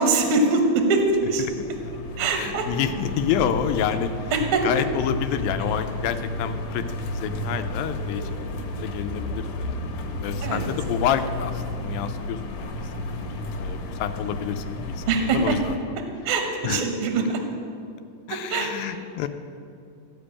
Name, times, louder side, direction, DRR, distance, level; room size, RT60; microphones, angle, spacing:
voice 1, 0.0-1.4 2.2-2.7 4.3-4.6 10.4-10.6 15.1-15.6 16.2-17.4 18.5-18.9, right 3 dB, 60° right, 4 dB, 1.4 m, -23 dB
sound 1, 1.0-15.8, left 1 dB, 70° left, 2.5 m, -32 dB
voice 2, 2.2-4.1 4.6-8.3 8.8-9.9 10.2-12.8 13.2-15.0 15.3-15.7 16.6-16.8 18.3-19.3, left 9 dB, 90° left, 9 dB, 2.4 m, -28 dB
15.5 x 5.2 x 8.6 m, 2.4 s
omnidirectional pair, 4.0 m